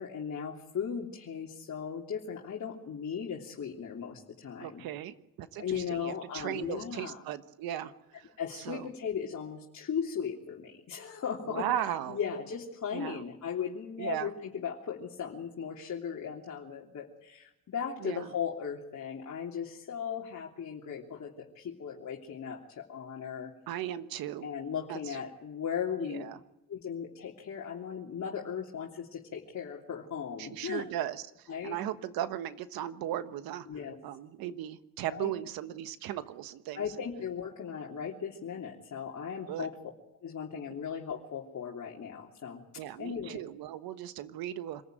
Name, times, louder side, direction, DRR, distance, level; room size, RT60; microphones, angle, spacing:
voice 1, 0.0-4.8 5.6-7.2 8.4-11.7 12.1-23.5 24.4-26.3 26.7-30.9 31.5-31.8 33.6-34.0 35.1-35.3 36.7-39.8 40.2-43.4, left 7 dB, 50° left, -2 dB, 3.2 m, -37 dB
voice 2, 4.6-8.3 8.6-8.9 11.5-12.2 12.9-13.2 14.0-14.3 18.0-18.3 23.7-24.5 24.9-25.1 26.0-26.4 30.4-33.7 34.0-36.9 39.5-39.7 42.8-44.8, right 12 dB, 80° right, 12 dB, 1.4 m, -37 dB
26.0 x 15.0 x 9.2 m, 0.92 s
supercardioid pair, 75°, 35 cm